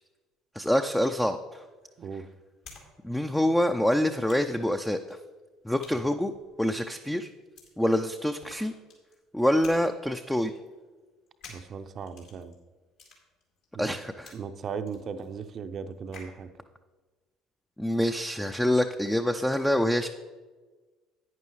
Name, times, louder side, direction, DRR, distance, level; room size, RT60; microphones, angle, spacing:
voice 1, 0.5-1.6 3.0-5.2 5.6-6.3 6.6-7.3 7.8-8.7 9.3-10.5 13.8-14.3 17.8-20.1, left 1 dB, 5° left, 6 dB, 0.5 m, -26 dB
sound 1, 1.5-2.9 3.1-16.4, left 3 dB, 65° left, 3.0 m, -53 dB
voice 2, 2.0-2.3 5.9-6.0 11.5-12.5 13.7-13.9 14.3-16.5, right 6 dB, 45° right, 10 dB, 0.6 m, -37 dB
10.5 x 9.6 x 3.1 m, 1.3 s
figure-of-eight pair, 55°, 0 cm